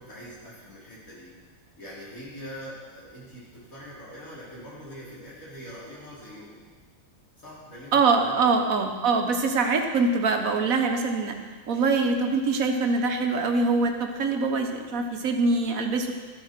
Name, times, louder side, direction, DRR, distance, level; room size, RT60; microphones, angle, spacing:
voice 1, 0.0-1.3 1.8-6.6 7.4-8.5, equal, 80° left, -7 dB, 4.2 m, -43 dB
voice 2, 7.9-11.4 11.7-16.1, right 3 dB, 80° right, 5 dB, 1.5 m, -24 dB
13.5 x 8.0 x 5.9 m, 1.5 s
omnidirectional pair, 1.5 m